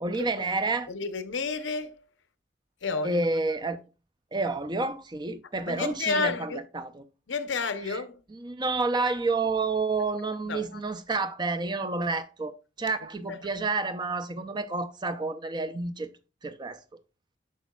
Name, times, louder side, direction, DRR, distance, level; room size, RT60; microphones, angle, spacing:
voice 1, 0.0-0.9 3.0-3.8 4.3-7.0 7.9-8.0 8.3-16.1 16.4-16.8, right 3 dB, 25° right, 0.5 m, -29 dB
voice 2, 0.9-2.0 2.8-3.2 5.7-6.6 7.3-8.2 10.5-10.8 13.3-13.4, left 4 dB, 85° left, 0.8 m, -31 dB
8.4 x 5.9 x 2.3 m
head